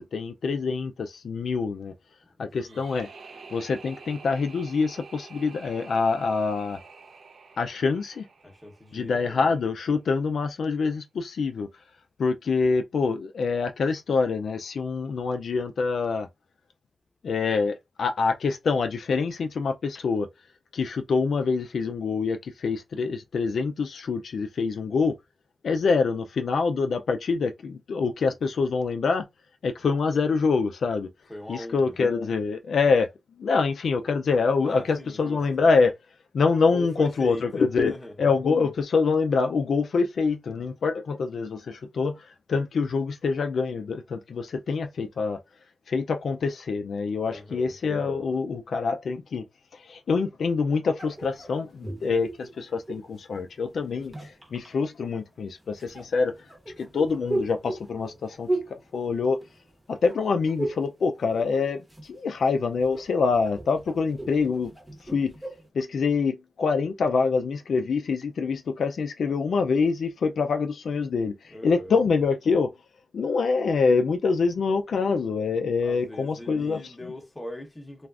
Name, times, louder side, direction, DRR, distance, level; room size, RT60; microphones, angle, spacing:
voice 1, 0.0-1.9 2.4-3.1 3.5-6.8 7.6-8.3 8.9-11.7 12.2-16.3 17.2-20.3 20.7-25.1 25.6-29.2 29.6-31.1 31.5-33.1 33.4-35.9 36.3-37.9 38.2-42.2 42.5-45.4 45.9-49.5 49.7-56.3 56.8-59.4 59.9-64.7 65.1-65.3 65.7-72.7 73.1-76.9, left 4 dB, 75° left, 0.3 m, -25 dB
voice 2, 2.4-2.8 8.4-9.6 31.3-32.0 34.6-35.4 36.6-38.1 47.3-47.7 71.5-72.0 75.8-78.1, left 1 dB, 15° left, 0.8 m, -40 dB
sound 1, 2.6-9.6, right 4 dB, 65° right, 0.6 m, -48 dB
sound 2, 51.0-53.2 53.9-54.7 55.8-59.8 60.1-60.9 61.2-62.1 62.4-65.7, right 1 dB, 15° right, 0.9 m, -35 dB
3.4 x 2.4 x 2.4 m
wide cardioid pair, 160°, 0 cm